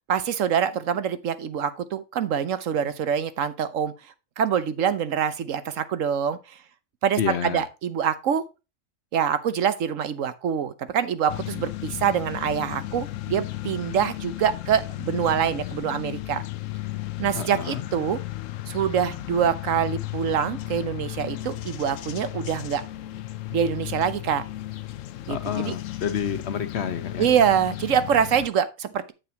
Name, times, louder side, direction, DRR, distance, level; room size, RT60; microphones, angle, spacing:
voice 1, 0.1-3.9 4.4-6.6 7.0-8.4 9.1-16.4 17.2-18.2 18.7-22.8 23.5-24.4 25.3-25.7 27.2-29.1, right 8 dB, 75° right, 1.2 m, -25 dB
voice 2, 7.2-7.7 17.3-17.8 25.3-27.3, left 7 dB, 60° left, 1.0 m, -29 dB
sound 1, 11.3-28.5, left 16 dB, 80° left, 1.0 m, -35 dB
8.8 x 7.0 x 2.8 m
omnidirectional pair, 1.4 m